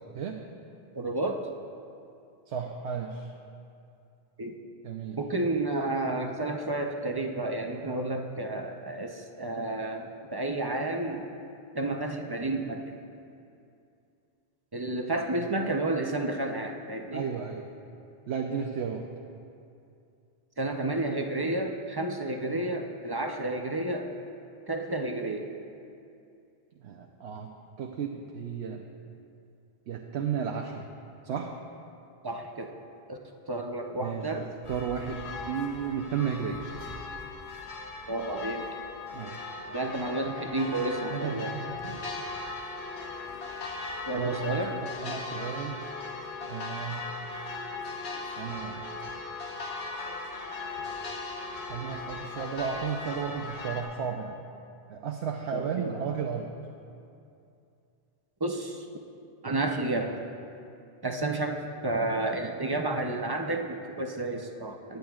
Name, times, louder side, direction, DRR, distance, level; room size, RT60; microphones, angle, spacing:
voice 1, 0.9-1.5 4.4-4.6 5.2-11.2 11.7-12.9 14.7-17.2 20.6-24.2 24.7-25.5 32.2-32.7 33.1-34.5 38.1-38.7 39.7-41.5 44.1-44.8 55.5-55.9 58.4-58.9 59.4-60.2 61.0-65.0, right 2 dB, 30° right, 3 dB, 0.5 m, -31 dB
voice 2, 2.5-3.3 4.8-5.2 17.1-17.7 18.3-19.0 26.8-27.5 27.8-28.8 29.9-30.9 31.2-31.5 34.0-36.6 39.1-39.6 41.1-42.1 44.1-45.8 46.5-47.1 48.4-48.8 51.7-54.4 54.9-56.5, right 7 dB, 90° right, 1 dB, 0.9 m, -34 dB
sound 1, 34.6-53.8, left 3 dB, 80° left, 1.3 m, -38 dB
21.0 x 9.3 x 2.4 m, 2.5 s
omnidirectional pair, 1.1 m